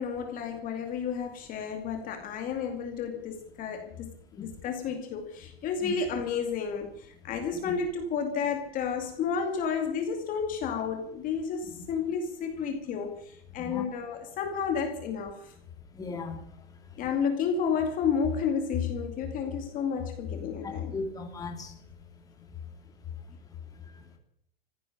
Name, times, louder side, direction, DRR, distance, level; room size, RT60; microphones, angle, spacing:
voice 1, 0.0-15.5 17.0-21.0, left 6 dB, 30° left, 2.4 m, -31 dB
voice 2, 15.9-16.4 20.6-21.7, left 4 dB, 10° left, 2.6 m, -37 dB
15.5 x 10.5 x 8.8 m
supercardioid pair, 150°, 29 cm